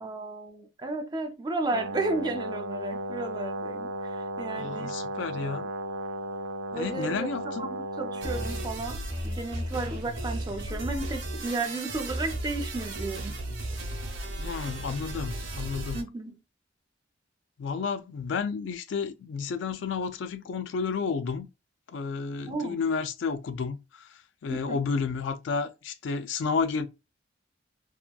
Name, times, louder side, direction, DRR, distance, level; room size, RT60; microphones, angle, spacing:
voice 1, 0.0-4.9 5.3-5.7 6.7-7.3 7.6-13.4 15.9-16.4 22.4-22.8 24.5-24.8, right 2 dB, 20° right, 0.4 m, -33 dB
Brass instrument, 1.7-8.7, right 1 dB, 90° right, 0.3 m, -35 dB
voice 2, 4.6-5.7 6.7-7.7 14.4-16.0 17.6-21.5 21.9-26.9, left 5 dB, 70° left, 0.3 m, -31 dB
sound 1, 8.2-16.0, right 1 dB, 65° right, 0.7 m, -34 dB
2.8 x 2.3 x 2.3 m
head